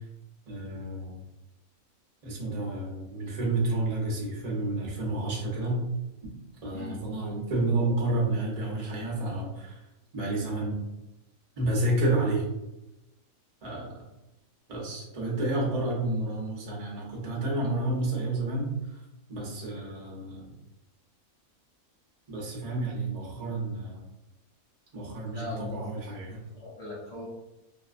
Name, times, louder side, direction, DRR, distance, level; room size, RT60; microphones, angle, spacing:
voice 1, 0.5-1.2 2.2-5.8 6.2-6.3 6.6-9.8 10.1-10.8 11.6-12.4 13.6-14.0 14.7-18.7 19.3-20.5 22.3-24.0 24.9-25.4 25.7-26.4, right 2 dB, 35° right, -4 dB, 0.7 m, -30 dB
voice 2, 6.7-7.0 25.3-25.8 26.3-27.3, left 1 dB, 45° left, -8 dB, 0.5 m, -39 dB
2.6 x 2.2 x 2.4 m, 0.93 s
omnidirectional pair, 1.5 m